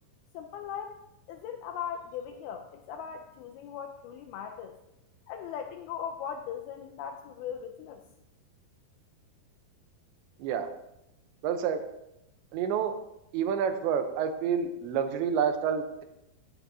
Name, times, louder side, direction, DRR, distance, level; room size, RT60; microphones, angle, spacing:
voice 1, 0.3-1.0 1.3-4.7 5.3-8.0, left 8 dB, 85° left, 5 dB, 2.2 m, -39 dB
voice 2, 11.4-11.8 12.5-13.0 13.3-16.0, right 7 dB, 85° right, 8 dB, 3.1 m, -28 dB
14.0 x 9.4 x 2.7 m, 0.85 s
omnidirectional pair, 5.0 m